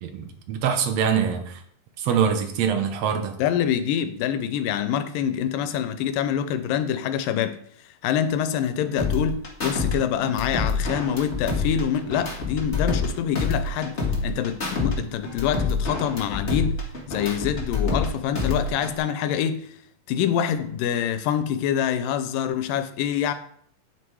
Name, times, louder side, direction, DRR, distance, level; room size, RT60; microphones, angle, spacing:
voice 1, 0.0-1.6 2.0-3.3, right 7 dB, 65° right, 6 dB, 1.9 m, -24 dB
voice 2, 3.4-7.6 8.0-13.9 14.2-16.8 17.1-19.7 20.1-23.3, left 9 dB, 90° left, 11 dB, 2.4 m, -25 dB
sound 1, 9.0-9.9 10.2-13.1 13.3-14.9 15.2-18.1 18.3-19.0, left 4 dB, 25° left, 1.7 m, -27 dB
10.0 x 6.1 x 4.8 m, 0.64 s
omnidirectional pair, 3.8 m